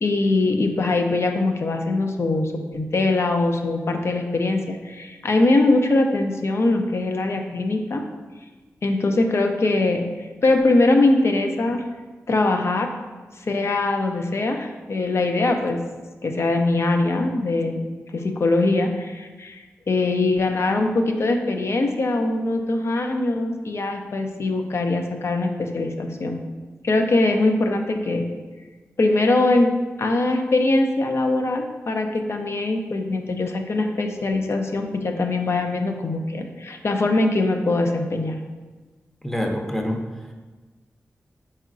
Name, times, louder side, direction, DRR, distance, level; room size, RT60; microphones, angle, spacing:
voice 1, 0.0-8.0 8.8-10.0 10.4-11.8 12.3-12.9 13.4-15.8 16.2-17.8 18.1-19.6 19.9-26.4 26.8-28.2 29.0-29.7 30.0-38.4, left 2 dB, 55° left, 4 dB, 0.5 m, -22 dB
voice 2, 39.2-40.3, equal, 5° left, 2 dB, 0.6 m, -27 dB
4.2 x 3.7 x 2.5 m, 1.3 s
cardioid pair, 45°, 5 cm